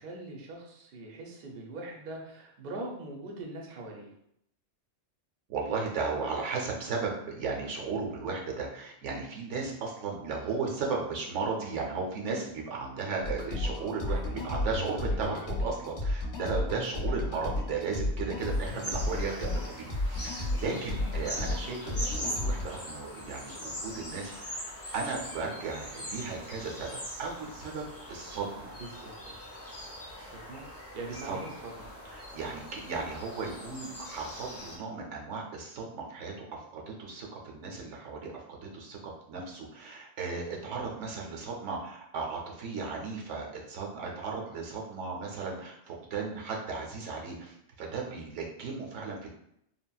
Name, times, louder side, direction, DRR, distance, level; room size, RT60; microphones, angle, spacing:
voice 1, 0.0-4.1 13.8-14.7 28.8-29.4 30.2-30.6 30.9-31.9, right 2 dB, 60° right, 0 dB, 0.7 m, -42 dB
voice 2, 5.5-28.8 31.1-31.6 32.0-49.3, right 4 dB, 85° right, 0 dB, 1.0 m, -36 dB
sound 1, 13.2-22.6, left 2 dB, 50° left, 0.7 m, -33 dB
sound 2, 18.4-34.8, equal, 25° left, 0.3 m, -42 dB
3.4 x 2.1 x 2.3 m, 0.74 s
omnidirectional pair, 1.2 m